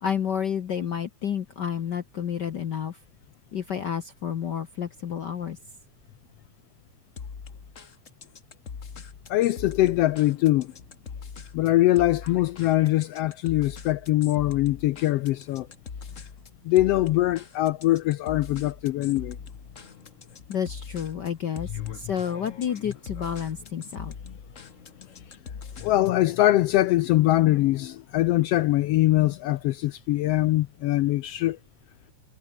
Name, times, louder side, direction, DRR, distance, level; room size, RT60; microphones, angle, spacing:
voice 1, 0.0-3.0 3.5-5.6 20.5-24.1, left 8 dB, 65° left, 1.1 m, -30 dB
sound 1, 7.2-26.2, left 6 dB, 35° left, 1.4 m, -42 dB
voice 2, 9.3-10.7 11.5-15.7 16.6-19.4 25.8-31.6, left 16 dB, 80° left, 1.4 m, -22 dB
omnidirectional pair, 3.3 m